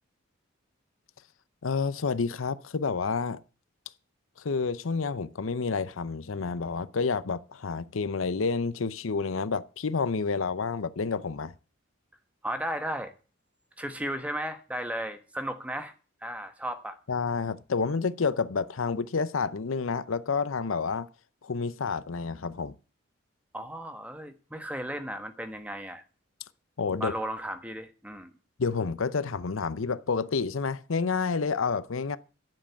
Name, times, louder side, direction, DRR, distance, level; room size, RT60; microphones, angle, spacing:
voice 1, 1.6-3.4 4.4-11.5 17.1-21.1 21.4-22.7 26.8-27.1 28.6-32.2, left 4 dB, 85° left, 0.7 m, -29 dB
voice 2, 12.4-13.1 13.8-15.9 16.2-17.0 23.5-26.0 27.0-28.3, right 1 dB, 5° right, 1.3 m, -35 dB
10.5 x 7.6 x 8.4 m
head